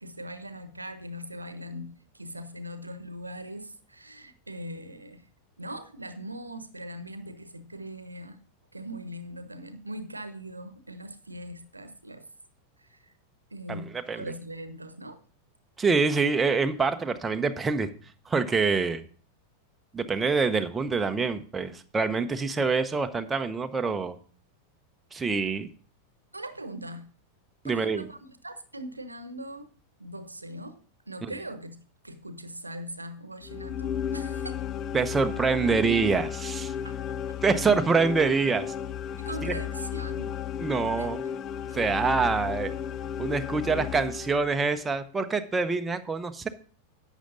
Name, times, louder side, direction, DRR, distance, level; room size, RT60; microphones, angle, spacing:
voice 1, 0.0-5.2 5.6-8.4 8.7-12.3 12.8-13.1 13.5-15.2 26.3-27.1 27.6-29.7 30.0-31.8 32.0-34.6 36.8-37.0 39.2-40.4 41.0-41.3, right 1 dB, 80° right, 12 dB, 1.1 m, -40 dB
voice 2, 13.7-14.2 15.8-17.9 18.3-19.0 19.9-24.2 25.1-25.7 27.6-28.1 31.2-31.3 34.9-36.7 37.4-38.7 39.4-39.6 40.6-41.2 41.7-42.7 43.2-46.5, right 4 dB, 15° right, 8 dB, 0.9 m, -26 dB
sound 1, 33.4-44.8, left 9 dB, 30° left, 0.6 m, -34 dB
11.5 x 8.2 x 3.9 m, 0.42 s
figure-of-eight pair, 90°, 0 cm